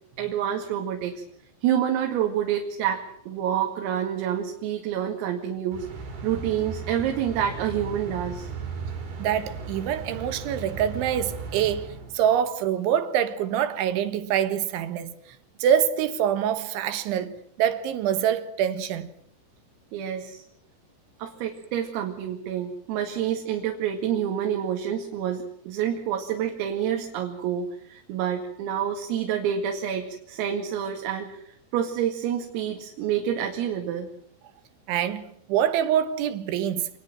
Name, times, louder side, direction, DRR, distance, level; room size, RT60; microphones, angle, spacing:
voice 1, 0.2-1.2 1.6-5.9 6.2-8.5 19.9-20.4 21.2-34.1, right 9 dB, 90° right, 4.9 m, -28 dB
sound 1, 5.7-12.5, right 4 dB, 50° right, 5.8 m, -36 dB
voice 2, 9.2-11.9 12.1-15.1 15.6-19.1 34.9-36.9, right 9 dB, 70° right, 3.7 m, -25 dB
27.5 x 20.0 x 7.5 m
omnidirectional pair, 5.9 m